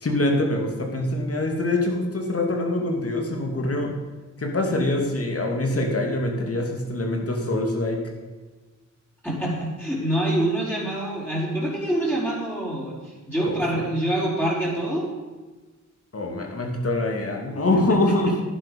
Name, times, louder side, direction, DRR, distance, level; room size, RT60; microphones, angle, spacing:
voice 1, 0.0-3.9 4.4-8.0 13.4-13.6 16.1-18.3, left 2 dB, 50° left, 2 dB, 2.5 m, -24 dB
voice 2, 9.2-15.1 17.7-18.3, right 1 dB, 5° left, -7 dB, 4.9 m, -26 dB
11.5 x 10.5 x 5.5 m, 1.3 s
cardioid pair, 65°, 31 cm